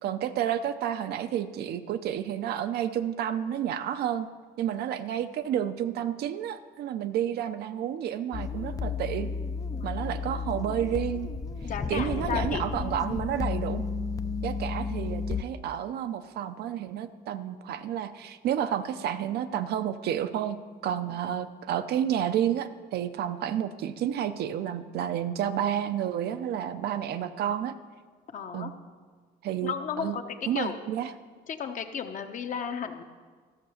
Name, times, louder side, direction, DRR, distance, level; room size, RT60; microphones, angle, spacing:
voice 1, 0.0-4.3 4.6-9.3 9.8-11.3 11.9-13.8 14.4-27.7 28.5-28.7 29.4-30.2 30.5-31.1, right 10 dB, 70° right, 10 dB, 0.7 m, -30 dB
sound 1, 8.3-15.4, left 5 dB, 20° left, 0.5 m, -32 dB
voice 2, 9.7-10.0 11.6-12.6 21.1-21.4 28.3-28.7 29.6-30.8 31.5-33.0, left 7 dB, 50° left, 6 dB, 1.0 m, -34 dB
13.5 x 6.7 x 6.5 m, 1.5 s
cardioid pair, 110°, 17 cm